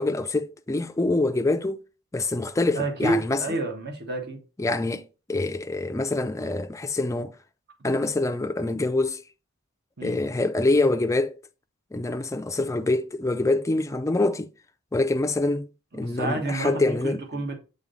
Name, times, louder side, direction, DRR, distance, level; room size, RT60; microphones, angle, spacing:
voice 1, 0.0-1.8 2.1-3.4 4.6-5.0 5.3-7.4 7.8-9.2 10.0-11.4 11.9-14.5 14.9-15.7 15.9-17.4, left 2 dB, 15° left, 0.4 m, -25 dB
voice 2, 2.7-4.4 10.0-10.2 15.9-17.6, right 2 dB, 50° right, 1.3 m, -29 dB
7.3 x 4.0 x 3.8 m
head